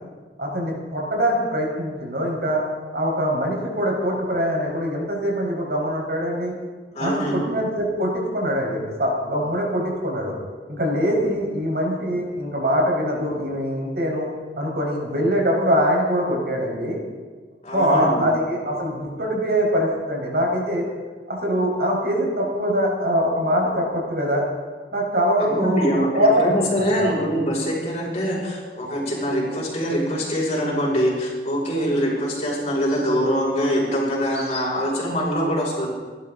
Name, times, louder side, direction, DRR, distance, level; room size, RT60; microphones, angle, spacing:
voice 1, 0.4-2.6 2.9-6.5 7.0-10.3 10.7-14.3 14.6-17.0 17.7-20.9 21.3-24.4 24.9-27.3, equal, 60° right, -1 dB, 4.9 m, -23 dB
voice 2, 6.9-7.5 17.6-18.2 25.4-35.9, equal, 40° left, -4 dB, 5.6 m, -24 dB
29.5 x 12.5 x 3.9 m, 1.5 s
head